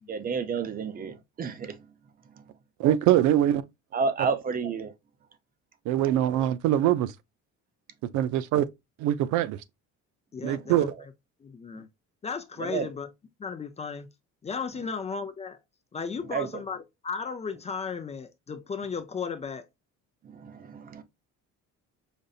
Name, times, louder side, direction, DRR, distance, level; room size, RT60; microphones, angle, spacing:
voice 1, 0.1-1.8 2.4-2.5 3.9-4.9 10.5-10.6 11.7-11.8 12.6-12.9 16.3-16.6 20.2-21.0, right 5 dB, 30° right, 0.5 m, -31 dB
voice 2, 2.8-3.6 5.9-7.1 8.1-8.7 9.0-9.6 10.4-10.9, right 12 dB, 80° right, 0.5 m, -23 dB
voice 3, 10.3-10.9 11.4-11.9 12.2-13.1 13.4-14.1 14.4-15.6 15.9-19.7, left 5 dB, 20° left, 0.4 m, -35 dB
5.2 x 2.6 x 2.3 m
cardioid pair, 145°, 30 cm